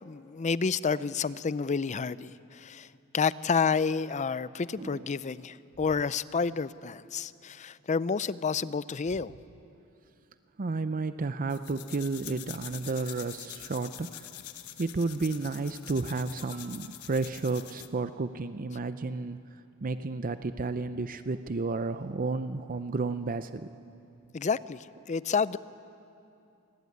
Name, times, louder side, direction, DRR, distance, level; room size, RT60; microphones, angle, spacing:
voice 1, 0.0-2.9 3.1-9.3 24.3-25.6, left 5 dB, 35° left, 17 dB, 0.5 m, -30 dB
voice 2, 4.8-5.1 10.6-14.3 14.8-19.4 19.8-23.7, right 3 dB, 40° right, 11 dB, 0.6 m, -32 dB
sound 1, 11.5-18.0, left 12 dB, 85° left, 1.1 m, -45 dB
26.0 x 19.5 x 9.5 m, 2.7 s
head